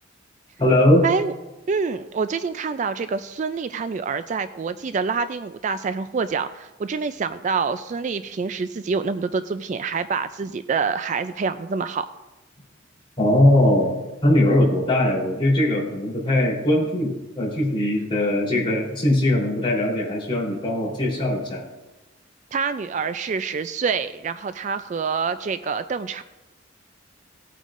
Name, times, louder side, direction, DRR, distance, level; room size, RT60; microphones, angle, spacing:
voice 1, 0.6-1.1 13.2-21.6, left 1 dB, 25° left, -5 dB, 3.5 m, -20 dB
voice 2, 1.7-12.1 22.5-26.2, right 5 dB, 35° right, 11 dB, 0.3 m, -26 dB
18.0 x 9.0 x 2.5 m, 1.0 s
head